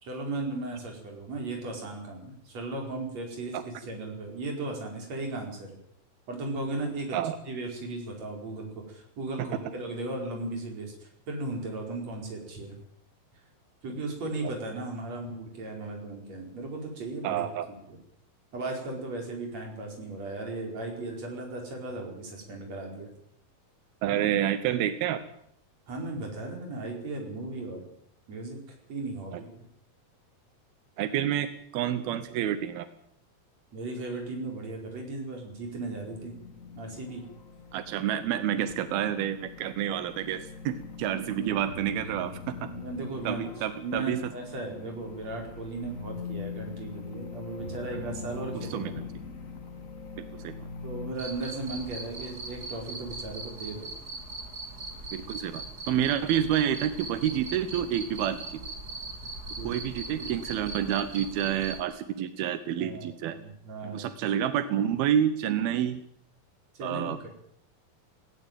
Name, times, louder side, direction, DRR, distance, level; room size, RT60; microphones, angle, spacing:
voice 1, 0.0-5.8 6.3-7.2 7.4-11.0 11.3-12.8 13.8-17.4 17.9-18.0 18.5-23.1 25.9-27.9 28.3-28.6 28.9-29.6 33.7-36.3 36.8-37.2 41.0-41.6 42.5-43.5 43.8-48.9 50.8-53.9 59.6-59.8 60.1-60.3 62.8-64.1 66.8-67.3, right 2 dB, 45° right, 1 dB, 5.9 m, -36 dB
voice 2, 17.2-17.7 24.0-25.2 29.3-29.4 31.0-31.5 31.7-32.9 37.7-42.5 43.2-44.3 48.5-48.9 50.2-50.5 55.1-58.6 59.6-63.4 63.8-66.0 66.8-67.3, right 10 dB, 85° right, 11 dB, 2.9 m, -29 dB
sound 1, 35.5-51.1, left 4 dB, 45° left, 1.0 m, -42 dB
Cricket, 51.1-61.8, right 2 dB, 25° right, 3.5 m, -40 dB
18.5 x 16.5 x 9.1 m, 0.71 s
omnidirectional pair, 4.2 m